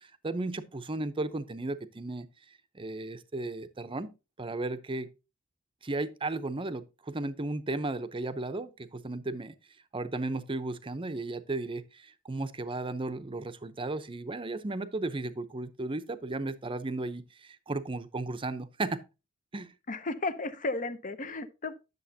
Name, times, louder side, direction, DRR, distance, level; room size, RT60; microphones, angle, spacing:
voice 1, 0.2-2.3 2.7-4.1 4.4-5.1 5.8-9.6 9.9-19.0 19.5-19.7, right 2 dB, 25° right, 0.6 m, -35 dB
voice 2, 19.9-21.7, left 2 dB, 40° left, 0.7 m, -34 dB
10.0 x 6.8 x 2.8 m
head